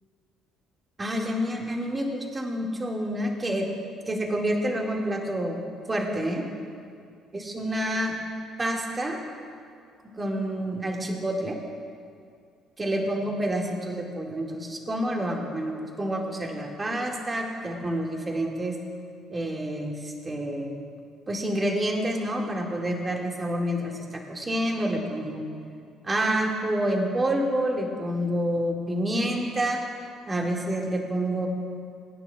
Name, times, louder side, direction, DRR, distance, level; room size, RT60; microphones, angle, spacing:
voice 1, 1.0-3.7 4.1-5.6 5.9-6.5 7.3-8.1 8.6-9.2 10.2-11.6 12.8-18.8 19.3-20.7 21.3-25.4 26.0-29.8 30.3-31.5, right 1 dB, 25° right, 0 dB, 2.1 m, -28 dB
21.0 x 9.9 x 2.4 m, 2.3 s
hypercardioid pair, 50°, 0 cm